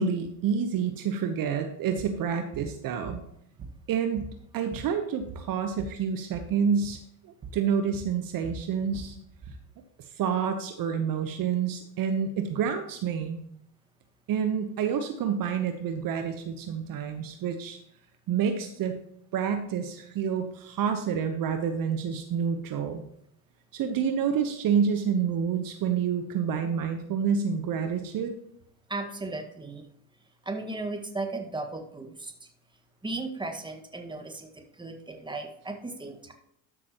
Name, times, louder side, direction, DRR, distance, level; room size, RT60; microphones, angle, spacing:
voice 1, 0.0-3.2 3.9-9.1 10.2-13.4 14.3-17.8 18.3-18.9 19.3-23.0 23.7-28.3, right 7 dB, 50° right, 7 dB, 1.0 m, -28 dB
sound 1, 2.0-2.2 2.5-2.7 3.1-3.9 4.2-6.0 6.3-6.5 6.8-7.0 7.4-7.6 7.9-9.6, right 4 dB, 35° right, 1.7 m, -42 dB
voice 2, 28.9-29.9 30.4-32.5 33.0-36.3, right 2 dB, 10° right, 4 dB, 1.7 m, -36 dB
12.5 x 6.1 x 3.0 m, 0.72 s
hypercardioid pair, 75°, 44 cm